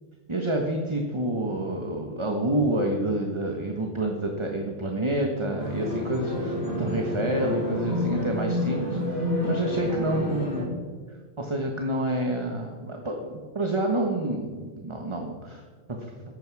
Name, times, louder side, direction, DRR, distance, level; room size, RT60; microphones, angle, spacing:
voice 1, 0.3-10.7 11.1-15.6 15.9-16.2, right 1 dB, 20° right, 2 dB, 1.2 m, -28 dB
sound 1, 5.6-10.6, left 1 dB, 70° left, 5.3 m, -29 dB
14.5 x 11.0 x 4.8 m, 1.5 s
omnidirectional pair, 1.5 m